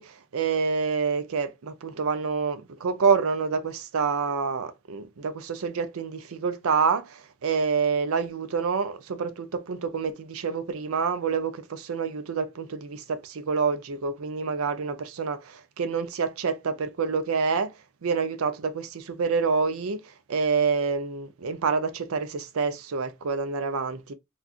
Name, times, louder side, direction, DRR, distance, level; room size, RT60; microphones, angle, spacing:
voice 1, 0.0-17.7 18.0-20.0 20.3-24.1, right 5 dB, 85° right, 0.5 m, -27 dB
3.6 x 2.3 x 2.3 m
head